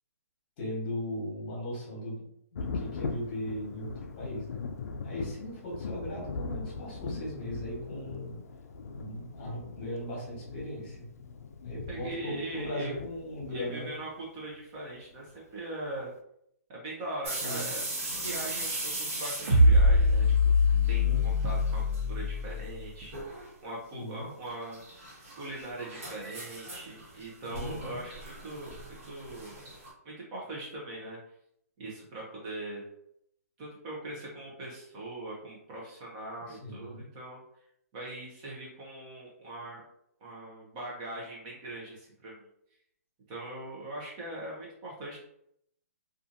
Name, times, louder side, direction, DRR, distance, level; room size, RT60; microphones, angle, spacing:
voice 1, 0.6-2.2 2.5-4.7 5.0-8.4 9.0-11.1 11.6-13.9 17.3-17.7 21.0-21.3 23.9-24.3 27.5-28.0 36.5-37.0, left 1 dB, 35° left, -3 dB, 1.1 m, -38 dB
Thunder, 2.6-14.0 15.3-15.4 15.9-16.0, left 4 dB, 65° left, 0.3 m, -40 dB
voice 2, 11.9-13.0 13.5-16.1 16.7-17.9 18.1-20.5 20.9-24.8 25.4-29.6 30.0-31.2 31.8-32.8 33.6-37.4 37.9-39.8 40.2-42.5 43.3-45.2, right 2 dB, 25° right, -4 dB, 0.6 m, -41 dB
sound 1, 17.2-21.1 21.3-22.0 22.3-22.4 23.1-23.5 24.5-29.9, right 2 dB, 50° right, 1.2 m, -39 dB
sound 2, 19.5-22.9, left 2 dB, 75° right, 1.0 m, -23 dB
2.6 x 2.4 x 2.5 m, 0.74 s
hypercardioid pair, 160°, 9 cm